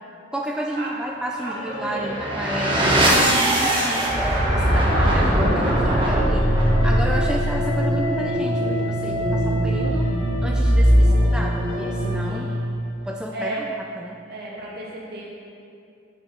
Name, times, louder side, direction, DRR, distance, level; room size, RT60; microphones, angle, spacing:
voice 1, 0.3-6.5 6.8-10.1 10.4-12.5 13.0-13.6 14.0-14.2, right 1 dB, 5° right, -1 dB, 0.3 m, -31 dB
sound 1, 1.3-13.1, right 1 dB, 90° left, 1.4 m, -33 dB
voice 2, 1.4-2.2 7.1-7.3 12.3-12.6 13.3-13.7 14.3-15.2, right 1 dB, 55° right, -5 dB, 2.2 m, -33 dB
sound 2, 1.8-12.6, equal, 25° right, 1.4 m, -20 dB
8.2 x 6.2 x 5.6 m, 2.5 s
head